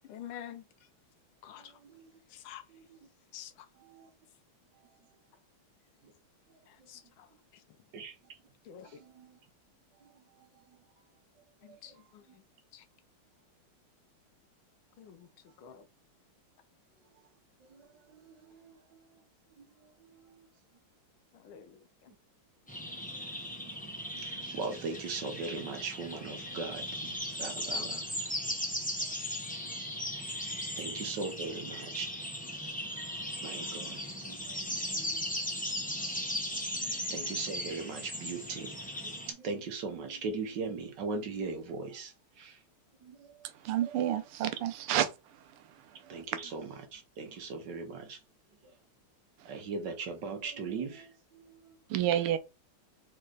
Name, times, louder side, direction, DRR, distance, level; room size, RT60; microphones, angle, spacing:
voice 1, 0.1-0.6 1.4-1.7 2.3-2.6 3.3-3.5 6.9-7.0 8.7-8.9 11.8-11.9 12.7-12.8 15.0-15.3 15.6-15.8 21.4-21.7, left 10 dB, 75° left, 1.3 m, -46 dB
voice 2, 8.8-9.3 17.7-17.9 18.1-19.0 19.6-19.7 20.1-20.3 23.1-23.3 23.6-28.4 30.7-32.1 33.4-34.0 34.3-34.4 34.9-35.2 35.5-35.6 36.5-38.7 39.0-42.6 43.0-43.3 46.1-48.2 49.4-51.1 51.3-51.8, right 4 dB, 60° right, 1.4 m, -39 dB
sound 1, 22.7-39.3, left 1 dB, 10° left, 0.4 m, -37 dB
voice 3, 43.6-45.1 51.9-52.4, right 11 dB, 90° right, 1.6 m, -29 dB
4.3 x 3.2 x 3.8 m
omnidirectional pair, 2.4 m